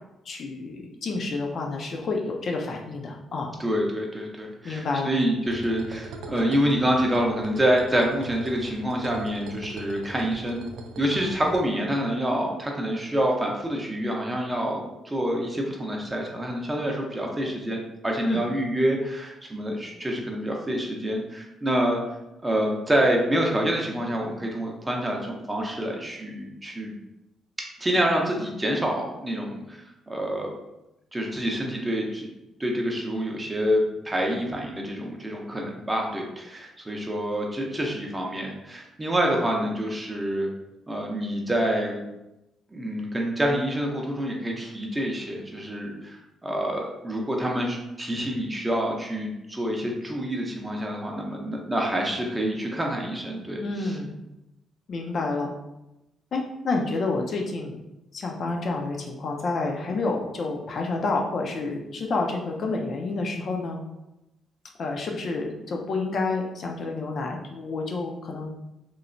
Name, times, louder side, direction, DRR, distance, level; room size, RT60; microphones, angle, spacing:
voice 1, 0.3-3.5 4.6-5.1 18.2-18.4 53.6-54.2 54.9-55.5 56.3-57.8 58.1-63.8 64.8-68.5, left 3 dB, 55° left, 1 dB, 0.4 m, -29 dB
voice 2, 3.6-10.7 11.0-22.0 22.4-26.9 27.8-30.5 31.1-32.3 32.6-40.5 40.9-42.0 42.7-54.0, equal, 15° right, 0 dB, 0.5 m, -27 dB
sound 1, 5.4-11.6, right 2 dB, 85° right, 0.3 m, -41 dB
3.0 x 2.1 x 2.5 m, 0.92 s
cardioid pair, 90°, 0 cm